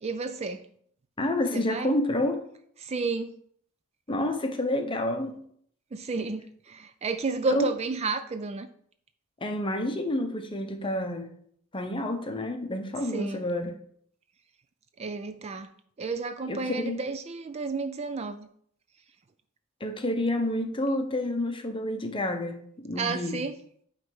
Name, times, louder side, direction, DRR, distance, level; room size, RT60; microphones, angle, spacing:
voice 1, 0.0-0.6 1.5-2.0 2.8-3.3 5.9-8.7 13.0-13.4 15.0-15.7 16.0-18.5 23.0-23.6, right 3 dB, 30° right, 0.4 m, -31 dB
voice 2, 1.2-2.4 4.1-5.4 7.5-7.7 9.4-11.3 11.7-13.8 16.5-17.0 19.8-23.4, left 1 dB, 25° left, 0.8 m, -29 dB
9.2 x 3.3 x 5.4 m
head